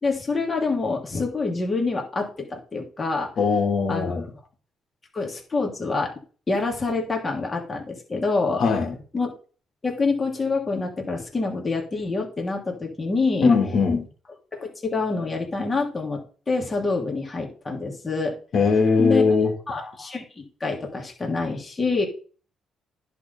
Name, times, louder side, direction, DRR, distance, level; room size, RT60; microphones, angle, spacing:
voice 1, 0.0-3.3 3.9-4.2 5.1-6.1 6.5-8.6 9.1-9.3 9.8-13.5 14.5-18.4 19.0-19.2 19.7-22.0, left 3 dB, 30° left, 3.0 m, -26 dB
voice 2, 3.4-4.2 8.6-9.0 13.4-14.1 18.5-19.5, left 4 dB, 60° left, 3.0 m, -20 dB
10.5 x 4.1 x 5.5 m
cardioid pair, 90°, 0 cm